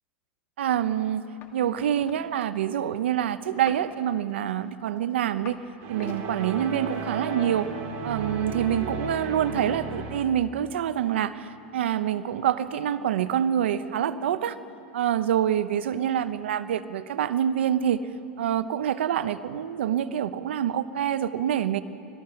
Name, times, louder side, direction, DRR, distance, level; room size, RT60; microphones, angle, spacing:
voice 1, 0.6-1.2 1.5-5.6 5.9-7.7 8.0-14.6 14.9-18.0 18.4-21.8, right 10 dB, 85° right, 13 dB, 0.8 m, -26 dB
sound 1, 1.4-1.5 1.8-2.2 3.5-3.9 4.5-5.6 5.9-6.3 6.9-7.1, left 9 dB, 35° left, 1.9 m, -45 dB
sound 2, 5.8-10.4, right 3 dB, 45° right, 3.2 m, -34 dB
25.0 x 17.5 x 5.8 m, 2.5 s
supercardioid pair, 140°, 6 cm